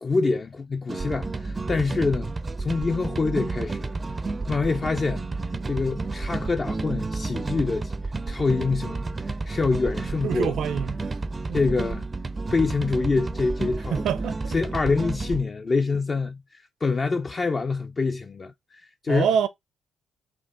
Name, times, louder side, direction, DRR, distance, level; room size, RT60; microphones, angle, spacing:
voice 1, 0.0-2.3 2.6-3.9 4.5-5.3 5.6-7.9 8.3-10.5 11.5-12.1 12.5-14.0 14.5-19.3, left 4 dB, 35° left, 0.4 m, -26 dB
sound 1, 0.9-15.4, right 3 dB, 25° right, 0.4 m, -31 dB
voice 2, 10.2-11.1 11.5-11.6 13.9-14.5 19.1-19.5, right 8 dB, 75° right, 0.6 m, -26 dB
4.4 x 2.8 x 3.6 m
cardioid pair, 90°, 0 cm